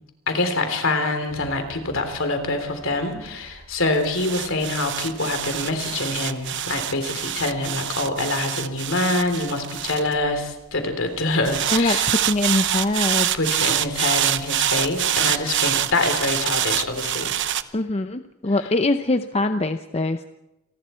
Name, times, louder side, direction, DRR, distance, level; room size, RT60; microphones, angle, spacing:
voice 1, 0.3-12.1 13.3-17.3, left 2 dB, 65° left, 6 dB, 3.7 m, -25 dB
sound 1, 1.3-10.8 11.5-17.6, right 11 dB, 55° right, 0.9 m, -26 dB
voice 2, 11.7-13.3 17.7-20.2, left 2 dB, 30° left, 8 dB, 0.7 m, -23 dB
28.5 x 20.0 x 4.5 m, 0.94 s
head